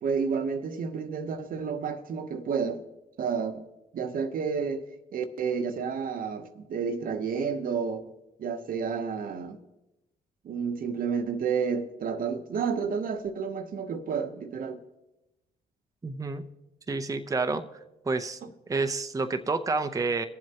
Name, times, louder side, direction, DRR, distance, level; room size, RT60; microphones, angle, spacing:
voice 1, 0.0-2.8 3.2-3.6 3.9-4.8 5.1-8.0 8.4-9.6 10.4-14.8, right 6 dB, 65° right, 0.9 m, -30 dB
voice 2, 16.0-16.4 16.9-17.6 18.0-18.4 18.7-20.2, right 3 dB, 20° right, 0.7 m, -29 dB
22.5 x 7.5 x 2.9 m
supercardioid pair, 65°, 16 cm